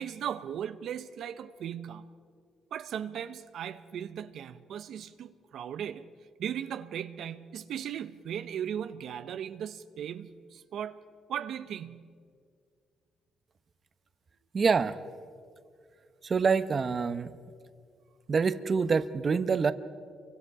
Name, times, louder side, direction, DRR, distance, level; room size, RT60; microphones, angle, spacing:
voice 1, 0.0-2.1 2.7-6.1 6.4-11.0 11.3-12.1, right 9 dB, 70° right, 0.7 m, -37 dB
voice 2, 14.5-15.0 16.2-17.3 18.3-19.7, right 5 dB, 40° right, 0.9 m, -26 dB
28.5 x 24.0 x 4.9 m
cardioid pair, 90°, 0 cm